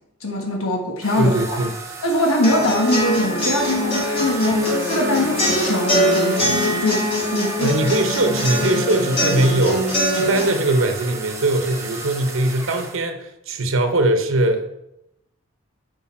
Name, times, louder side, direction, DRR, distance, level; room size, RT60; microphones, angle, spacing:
voice 1, 0.2-1.6 2.0-7.7, left 1 dB, 90° left, 1 dB, 1.3 m, -22 dB
sound 1, 1.0-13.0, right 3 dB, 15° right, 1.0 m, -33 dB
voice 2, 1.2-1.7 7.6-14.7, right 1 dB, 70° right, 6 dB, 0.8 m, -21 dB
sound 2, 2.4-10.4, left 1 dB, 30° left, 2.9 m, -22 dB
9.8 x 5.2 x 4.3 m, 0.86 s
head